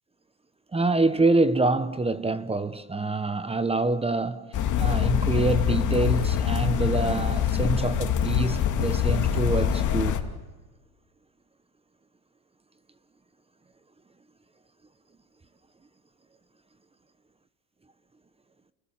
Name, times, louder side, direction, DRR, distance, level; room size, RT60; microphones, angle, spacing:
voice 1, 0.7-4.5 4.8-10.2, right 3 dB, 15° right, 1.1 m, -26 dB
sound 1, 4.5-10.2, left 9 dB, 40° left, 2.5 m, -24 dB
29.5 x 20.0 x 7.4 m
supercardioid pair, 105°, 44 cm